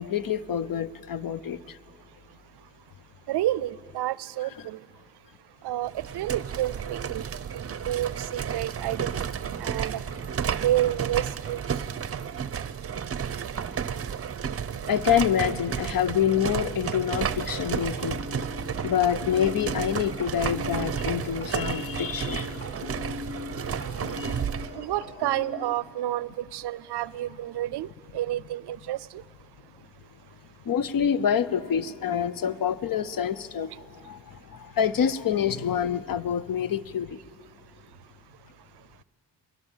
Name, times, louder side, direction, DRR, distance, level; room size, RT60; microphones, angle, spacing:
voice 1, 0.0-1.6 4.6-4.7 14.9-18.2 18.8-22.5 24.2-24.4 30.7-33.7 34.1-34.2 34.8-37.1, left 8 dB, 55° left, 16 dB, 0.8 m, -26 dB
voice 2, 3.3-4.8 5.6-7.2 7.8-9.1 9.6-10.0 10.6-11.6 24.7-27.9 28.1-29.0, right 13 dB, 75° right, 21 dB, 0.5 m, -29 dB
sound 1, 5.9-24.7, right 7 dB, 35° right, 0.7 m, -32 dB
sound 2, 17.2-25.7, left 3 dB, 25° left, 2.4 m, -40 dB
28.0 x 20.5 x 7.3 m, 2.4 s
cardioid pair, 85°, 41 cm